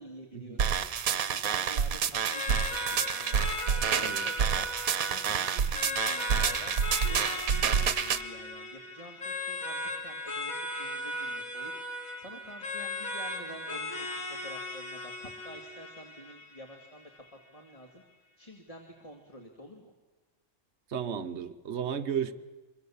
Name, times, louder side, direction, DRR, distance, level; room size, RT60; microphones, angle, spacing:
voice 1, 0.0-6.8 7.0-11.7 12.2-14.2 14.4-17.1 17.5-18.0 18.4-19.9, equal, 25° left, 2 dB, 2.0 m, -49 dB
sound 1, 0.6-8.2, right 7 dB, 75° right, 1.3 m, -28 dB
sound 2, 2.3-17.3, left 2 dB, 70° left, 2.8 m, -37 dB
voice 2, 3.8-4.3 20.9-22.3, right 8 dB, 55° right, 10 dB, 1.2 m, -34 dB
24.5 x 23.5 x 7.1 m, 1.2 s
omnidirectional pair, 1.5 m